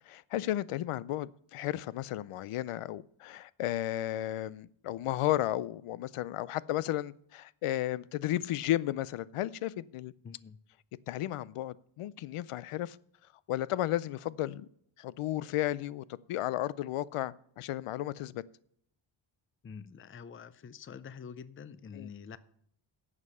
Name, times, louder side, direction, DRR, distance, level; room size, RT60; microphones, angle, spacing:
voice 1, 0.1-10.1 11.1-13.0 13.5-14.7 15.0-18.4 21.9-22.1, left 14 dB, 90° left, 0.6 m, -33 dB
voice 2, 10.2-10.6 19.6-22.4, left 6 dB, 25° left, 0.4 m, -46 dB
11.0 x 7.5 x 5.5 m
wide cardioid pair, 175°, 50 cm